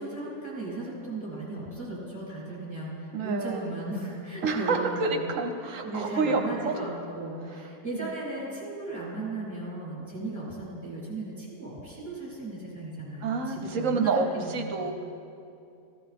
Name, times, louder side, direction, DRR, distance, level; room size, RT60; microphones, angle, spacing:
voice 1, 0.0-5.3 5.8-14.9, right 2 dB, 5° left, -8 dB, 3.8 m, -36 dB
voice 2, 3.1-3.7 4.4-6.7 8.0-8.1 13.2-15.1, right 4 dB, 55° right, 5 dB, 1.2 m, -28 dB
15.0 x 14.0 x 3.6 m, 2.6 s
omnidirectional pair, 1.8 m